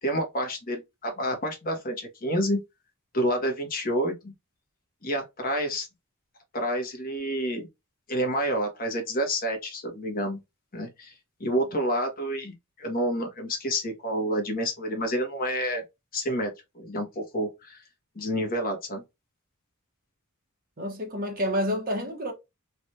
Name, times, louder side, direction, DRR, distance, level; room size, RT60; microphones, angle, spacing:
voice 1, 0.0-2.6 3.1-4.3 5.0-5.9 6.5-7.7 8.1-10.4 10.7-11.1 11.4-15.8 16.1-17.8 18.1-19.0, equal, 40° left, 1.1 m, -29 dB
voice 2, 20.8-22.3, equal, 40° right, 1.1 m, -29 dB
3.3 x 2.5 x 2.7 m
head